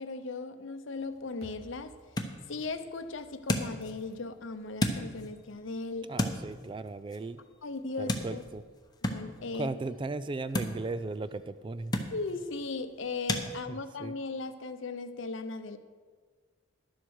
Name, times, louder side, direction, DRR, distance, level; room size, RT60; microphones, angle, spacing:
voice 1, 0.0-1.9 2.5-6.1 7.6-8.4 9.0-9.7 12.1-15.8, left 3 dB, 70° left, 10 dB, 0.7 m, -37 dB
sound 1, 1.0-13.5, left 1 dB, 20° left, 0.8 m, -37 dB
sound 2, 1.4-5.7, right 1 dB, 85° right, 2.2 m, -59 dB
voice 2, 6.1-7.4 8.0-8.6 9.5-11.9 13.7-14.2, right 3 dB, 25° right, 14 dB, 0.3 m, -36 dB
11.0 x 7.7 x 6.3 m, 1.5 s
head